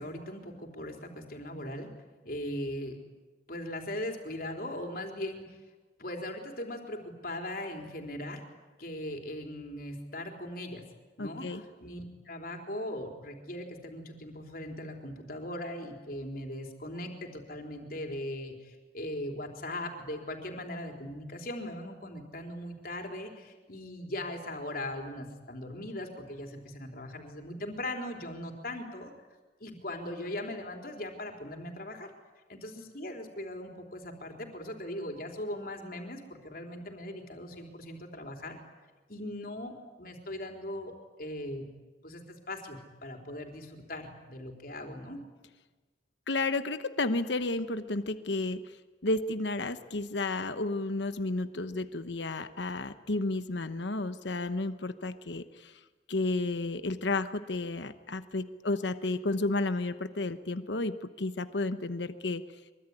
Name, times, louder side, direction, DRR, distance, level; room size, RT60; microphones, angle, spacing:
voice 1, 0.0-1.9 2.2-3.0 3.5-5.4 6.0-8.4 8.8-10.8 11.2-29.1 29.6-32.1 32.5-38.6 39.1-41.7 42.0-45.2, left 1 dB, 50° left, 3 dB, 4.1 m, -39 dB
voice 2, 11.2-11.6 46.3-48.8 49.0-55.8 56.1-62.4, left 2 dB, 75° left, 11 dB, 1.1 m, -32 dB
24.5 x 24.0 x 9.9 m, 1.2 s
head